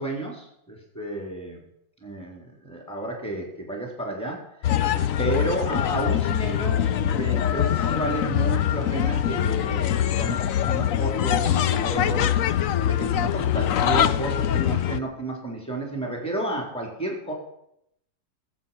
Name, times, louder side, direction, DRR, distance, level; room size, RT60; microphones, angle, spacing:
voice 1, 0.0-1.6 2.0-4.4 5.2-12.4 12.8-17.3, right 1 dB, 5° left, 0 dB, 3.6 m, -31 dB
sound 1, 4.6-15.0, left 10 dB, 65° left, 0.8 m, -23 dB
19.5 x 8.5 x 5.8 m, 0.76 s
omnidirectional pair, 2.0 m